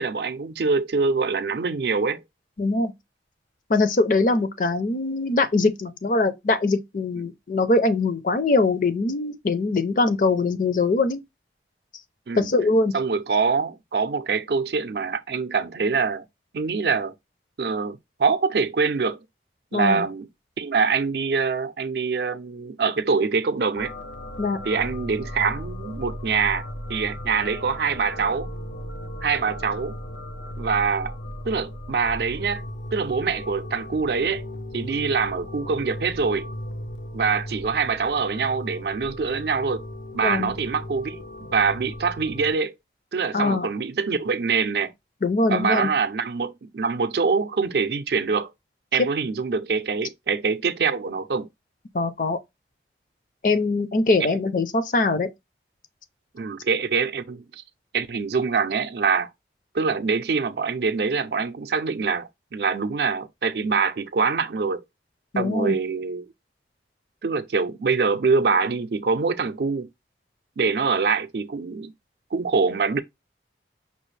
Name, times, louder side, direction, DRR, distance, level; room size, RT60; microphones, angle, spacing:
voice 1, 0.0-2.2 12.3-12.5 12.9-16.3 16.5-17.1 17.6-19.2 19.7-20.3 20.6-23.9 24.6-28.5 29.2-30.0 30.6-31.1 31.4-32.6 32.9-34.4 34.7-36.5 37.1-39.8 40.1-41.3 41.5-42.7 43.1-44.9 45.5-48.5 48.9-51.5 56.3-57.6 57.9-59.3 59.7-64.8 65.4-66.3 67.2-69.9 70.6-71.9 72.3-73.0, right 5 dB, 65° right, 0.4 m, -24 dB
voice 2, 2.6-2.9 3.7-11.2 12.4-12.9 19.7-20.1 24.4-24.6 40.2-40.5 43.3-43.7 45.2-45.9 51.9-52.4 53.4-55.3 65.3-65.8, left 3 dB, 45° left, 0.5 m, -22 dB
sound 1, 23.7-42.5, left 1 dB, 85° left, 0.7 m, -36 dB
5.4 x 2.4 x 3.2 m
head